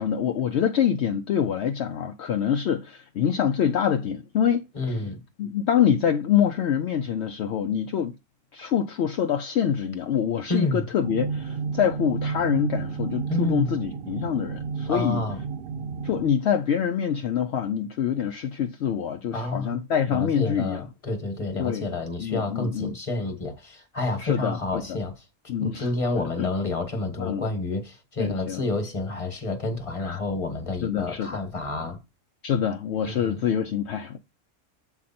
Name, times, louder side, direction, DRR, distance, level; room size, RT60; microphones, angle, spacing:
voice 1, 0.0-5.0 5.4-8.1 8.5-15.2 16.0-20.9 21.6-21.9 22.2-22.9 24.2-25.0 25.5-25.9 26.4-26.5 27.2-27.5 28.2-28.6 30.0-30.2 30.8-31.4 32.4-34.2, left 8 dB, 65° left, 0.8 m, -25 dB
voice 2, 4.7-5.2 10.5-10.8 13.3-13.7 14.9-15.4 19.3-19.8 20.1-25.1 25.6-32.0 33.0-33.4, left 2 dB, 25° left, 1.4 m, -29 dB
sound 1, 11.0-16.3, right 5 dB, 55° right, 0.8 m, -31 dB
7.6 x 4.6 x 4.2 m
omnidirectional pair, 1.3 m